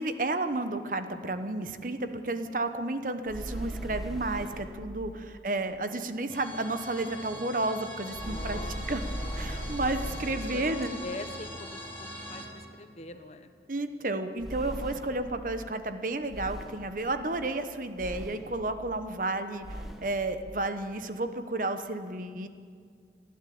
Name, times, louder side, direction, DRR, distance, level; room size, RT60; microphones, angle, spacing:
voice 1, 0.0-8.6 8.9-9.0 9.4-11.0 13.7-22.5, right 2 dB, 50° right, 9 dB, 1.1 m, -32 dB
sound 1, 3.3-4.8 8.1-10.4 14.4-15.3 16.3-17.0 18.0-18.6 19.6-20.2, equal, ahead, 1.5 m, -38 dB
voice 2, 5.2-5.6 8.2-9.7 10.5-10.6 11.0-13.5, left 2 dB, 40° left, 8 dB, 1.2 m, -44 dB
sound 2, 6.3-12.5, left 1 dB, 15° left, 4.3 m, -42 dB
29.0 x 11.5 x 8.6 m, 2.1 s
head